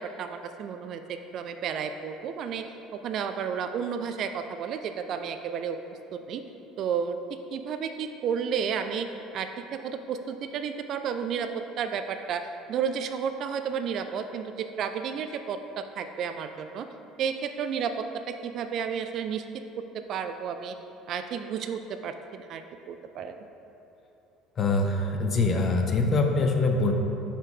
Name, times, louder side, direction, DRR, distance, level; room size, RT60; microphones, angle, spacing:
voice 1, 0.0-2.6 3.0-5.8 6.1-6.4 6.8-7.2 7.5-9.1 9.3-11.5 11.8-12.4 12.7-15.6 16.0-16.9 17.2-17.9 18.3-19.4 20.1-20.8 21.1-22.1 22.5-23.3, right 7 dB, 50° right, 8 dB, 0.4 m, -32 dB
voice 2, 24.6-26.9, left 3 dB, 40° left, 3 dB, 0.8 m, -24 dB
5.9 x 5.1 x 4.9 m, 2.9 s
figure-of-eight pair, 60°, 0 cm